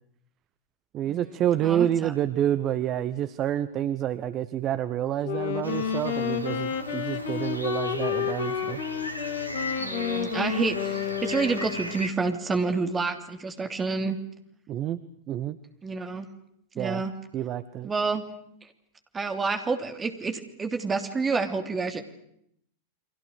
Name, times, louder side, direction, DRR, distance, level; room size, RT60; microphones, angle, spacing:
voice 1, 0.9-8.8 14.7-15.0 15.3-15.6 16.8-17.0 17.3-17.9, right 11 dB, 35° right, 14 dB, 1.0 m, -28 dB
voice 2, 1.6-2.1 9.8-14.2 15.8-16.2 16.7-17.1 17.8-18.2 19.1-22.0, right 4 dB, 15° right, 6 dB, 3.1 m, -29 dB
Wind instrument woodwind instrument, 5.2-12.0, left 8 dB, 55° left, 2.5 m, -30 dB
sound 1, 5.6-12.1, equal, 90° left, 2.0 m, -37 dB
30.0 x 23.5 x 6.7 m, 0.73 s
figure-of-eight pair, 90°, 0 cm